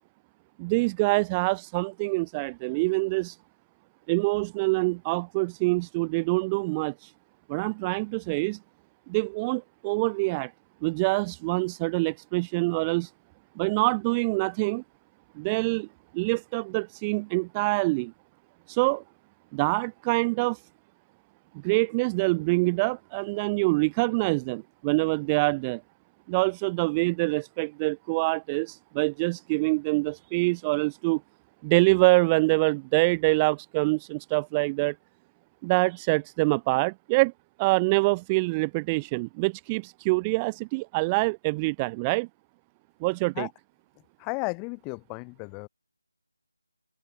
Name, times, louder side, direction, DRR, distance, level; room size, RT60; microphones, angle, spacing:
voice 1, 0.6-3.4 4.1-7.1 7.5-8.6 9.1-10.5 10.8-13.1 13.6-14.8 15.4-15.9 16.1-18.1 18.7-19.0 19.5-20.6 21.5-25.8 26.3-31.2 31.6-35.0 35.6-37.3 37.6-42.3 43.0-43.5, right 27 dB, 15° right, 0.9 m, -25 dB
voice 2, 44.2-45.7, left 35 dB, 15° left, 2.1 m, -34 dB
figure-of-eight pair, 160°, 0 cm